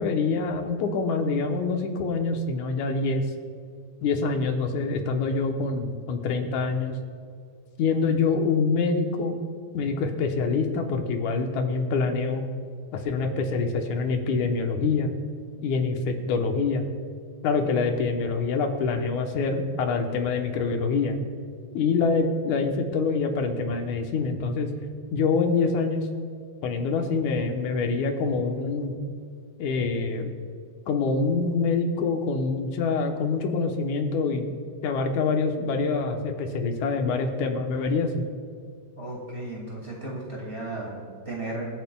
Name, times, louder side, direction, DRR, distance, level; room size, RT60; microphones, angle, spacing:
voice 1, 0.0-3.2 4.0-7.0 7.8-9.4 9.7-12.4 12.9-15.1 15.6-16.8 17.4-21.2 21.7-24.7 25.1-26.1 26.6-28.9 29.6-30.3 30.9-34.5 34.8-38.2, left 4 dB, 85° left, 4 dB, 2.4 m, -25 dB
voice 2, 39.0-41.6, right 2 dB, 25° right, -3 dB, 2.1 m, -35 dB
26.0 x 9.1 x 2.3 m, 2.1 s
omnidirectional pair, 3.4 m